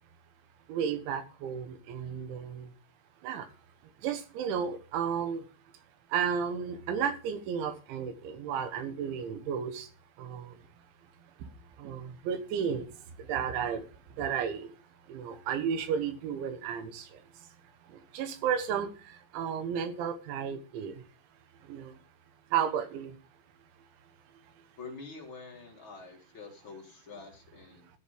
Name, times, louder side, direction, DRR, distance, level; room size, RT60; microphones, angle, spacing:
voice 1, 0.7-2.7 3.2-3.5 4.0-5.4 6.1-9.9 10.2-10.5 11.8-12.9 13.3-13.8 14.2-14.7 15.1-17.1 18.1-18.9 19.3-20.9 21.7-21.9 22.5-23.1, right 7 dB, 80° right, 3.6 m, -32 dB
voice 2, 24.8-27.9, left 4 dB, 40° left, 2.1 m, -46 dB
14.5 x 7.2 x 5.1 m
omnidirectional pair, 5.3 m